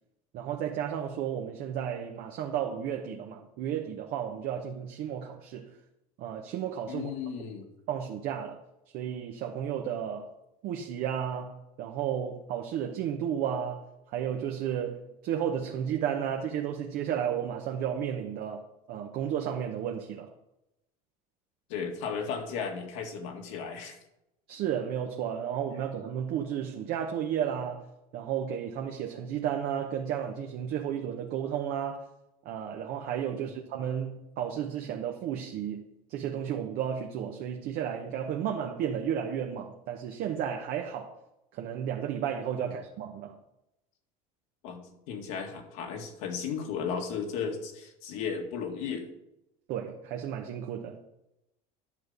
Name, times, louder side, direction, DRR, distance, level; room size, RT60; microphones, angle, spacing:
voice 1, 0.3-5.7 6.2-7.1 7.9-8.6 8.9-10.3 10.6-13.8 14.1-20.3 24.5-27.8 28.1-32.0 32.4-41.1 41.5-43.4 49.7-51.0, right 9 dB, 60° right, 1.0 m, -33 dB
voice 2, 6.9-7.7 21.7-24.0 33.4-33.5 42.6-42.8 44.6-44.8 45.1-49.1, left 6 dB, 75° left, 1.9 m, -35 dB
10.5 x 6.4 x 5.3 m
supercardioid pair, 110°, 18 cm